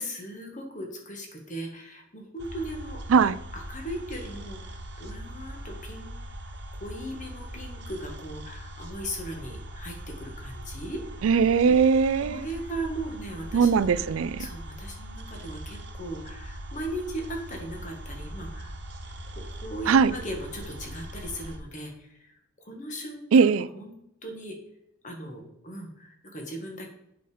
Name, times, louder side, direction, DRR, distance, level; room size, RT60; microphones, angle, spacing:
voice 1, 0.0-3.0 3.5-6.1 6.7-11.0 12.2-14.0 14.4-18.7 19.3-23.9 24.2-24.6 25.0-26.9, right 1 dB, 40° left, 2 dB, 1.6 m, -38 dB
sound 1, 2.4-21.6, equal, 55° right, 1.2 m, -41 dB
voice 2, 11.2-12.4 13.5-14.5 19.9-20.1 23.3-23.7, right 5 dB, 85° right, 17 dB, 0.4 m, -20 dB
7.8 x 5.2 x 5.1 m, 0.80 s
head